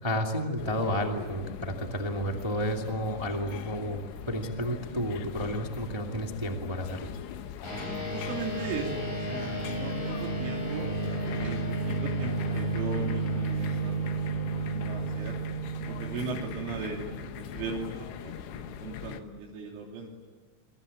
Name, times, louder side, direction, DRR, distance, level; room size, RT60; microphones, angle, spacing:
voice 1, 0.0-7.1, equal, 30° right, 2 dB, 0.4 m, -31 dB
sound 1, 0.6-19.2, left 9 dB, 70° left, 3.3 m, -41 dB
sound 2, 7.6-17.4, right 3 dB, 40° left, 9.4 m, -32 dB
voice 2, 7.8-10.9 11.4-15.4 15.9-20.1, right 4 dB, 85° right, -2 dB, 5.5 m, -38 dB
28.0 x 24.0 x 8.7 m, 1.3 s
omnidirectional pair, 5.5 m